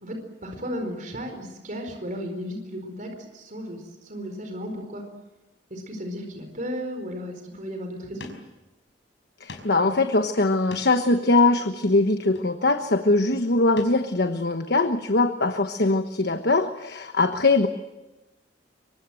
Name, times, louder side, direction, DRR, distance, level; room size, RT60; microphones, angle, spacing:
voice 1, 0.0-5.1 5.7-8.3, equal, 45° right, 4 dB, 4.6 m, -34 dB
sound 1, 8.2-8.5 8.9-9.0 9.5-9.8 10.4-11.1 12.2-12.8 13.8-14.0 14.5-14.6, left 3 dB, 80° left, 5.2 m, -43 dB
voice 2, 9.4-17.7, left 2 dB, 60° left, 7 dB, 1.3 m, -22 dB
25.5 x 24.0 x 7.8 m, 1.1 s
head